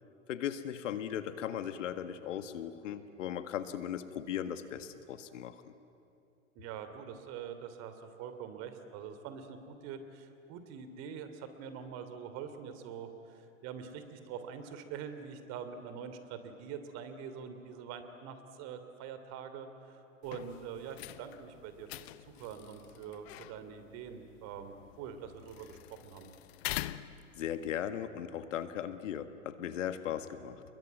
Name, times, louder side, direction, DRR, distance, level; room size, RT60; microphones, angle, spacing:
voice 1, 0.3-5.7 27.4-30.6, left 10 dB, 65° left, 10 dB, 1.8 m, -38 dB
voice 2, 6.5-26.3, right 7 dB, 40° right, 9 dB, 3.0 m, -45 dB
sound 1, 20.2-27.7, left 16 dB, 50° left, 0.9 m, -45 dB
29.0 x 22.0 x 9.4 m, 2.7 s
hypercardioid pair, 120°, 40 cm